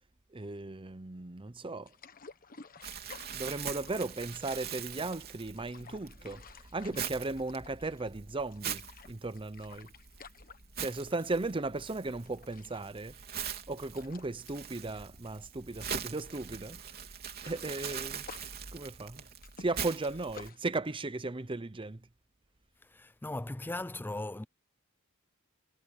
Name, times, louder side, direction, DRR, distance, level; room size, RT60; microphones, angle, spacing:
voice 1, 0.3-1.9 3.3-6.4 6.7-9.9 10.8-13.2 13.7-16.8 17.4-18.3 18.7-19.2 19.6-22.0, right 2 dB, 25° right, 0.8 m, -36 dB
sound 1, 1.9-4.9 5.4-8.2 8.5-11.4 11.7-11.9 12.2-16.0 16.3-16.5 16.8-20.6, left 5 dB, 40° left, 1.3 m, -53 dB
Crumpling crinkling, 2.8-20.5, right 8 dB, 45° right, 3.3 m, -43 dB
voice 2, 22.9-24.4, left 2 dB, 10° left, 0.4 m, -38 dB
head